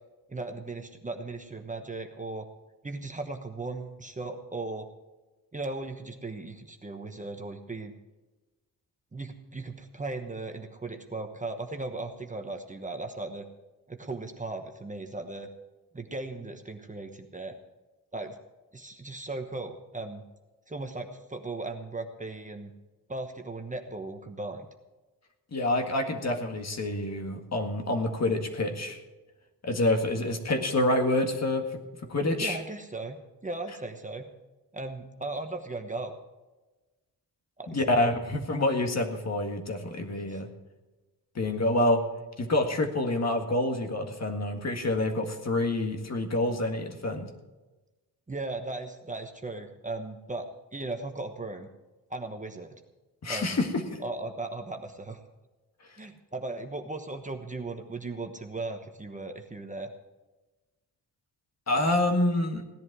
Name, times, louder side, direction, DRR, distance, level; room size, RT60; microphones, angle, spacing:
voice 1, 0.3-2.5 2.8-4.9 5.5-7.9 9.1-13.5 13.9-15.5 15.9-17.5 18.1-18.4 18.7-20.2 20.7-22.7 23.1-24.7 32.4-33.2 33.4-34.3 34.7-36.1 37.6-38.0 40.3-40.4 48.3-51.7 52.1-52.8 53.3-53.6 54.0-55.2 56.0-59.9, right 2 dB, 20° right, 5 dB, 1.1 m, -37 dB
voice 2, 25.5-29.0 29.6-31.8 32.1-32.6 37.7-40.5 41.3-42.0 42.4-47.3 53.2-54.0 61.7-62.6, left 1 dB, 40° left, 5 dB, 1.8 m, -27 dB
16.5 x 11.0 x 4.8 m, 1.2 s
wide cardioid pair, 115°, 39 cm